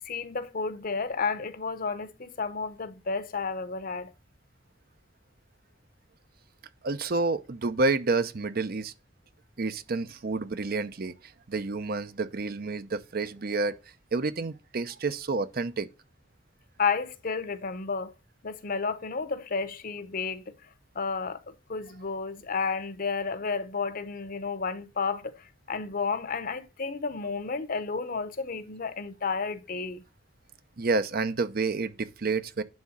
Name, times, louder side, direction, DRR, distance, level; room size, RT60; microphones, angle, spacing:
voice 1, 0.0-4.1 16.8-18.1 18.4-20.5 20.9-30.0, left 5 dB, 50° left, 0.8 m, -32 dB
voice 2, 6.8-8.9 9.6-13.8 14.1-15.9 30.8-32.6, right 3 dB, 55° right, 0.7 m, -29 dB
10.5 x 3.6 x 7.1 m
head